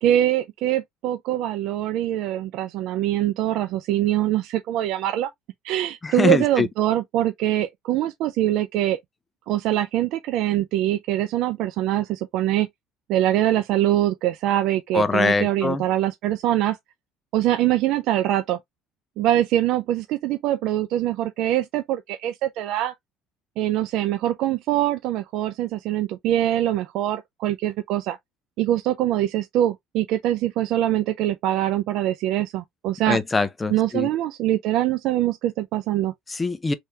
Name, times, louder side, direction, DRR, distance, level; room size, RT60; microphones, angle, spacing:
voice 1, 0.0-5.3 5.6-9.0 9.5-12.7 13.1-16.8 17.3-18.6 19.2-22.9 23.6-28.2 28.6-33.2 33.7-36.1, right 13 dB, 70° right, 0.4 m, -23 dB
voice 2, 6.0-6.7 14.9-15.8 33.1-34.1 36.3-36.7, left 3 dB, 20° left, 0.6 m, -23 dB
3.4 x 2.8 x 3.1 m
cardioid pair, 110°, 0 cm